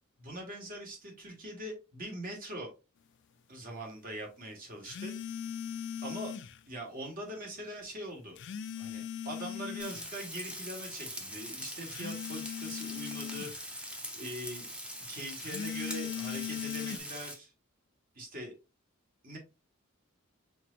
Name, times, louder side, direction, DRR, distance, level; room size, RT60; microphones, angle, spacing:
voice 1, 0.2-2.7 3.5-5.1 6.0-6.3 6.7-8.4 8.8-14.7 15.1-17.5 18.1-18.5 19.2-19.4, right 1 dB, 45° right, 1 dB, 1.6 m, -42 dB
sound 1, 4.8-6.6 8.4-10.1 11.9-13.6 15.4-17.0, left 9 dB, 60° left, 0.4 m, -39 dB
Frying (food), 9.8-17.3, equal, 5° right, 0.8 m, -43 dB
4.5 x 4.0 x 2.5 m, 0.28 s
head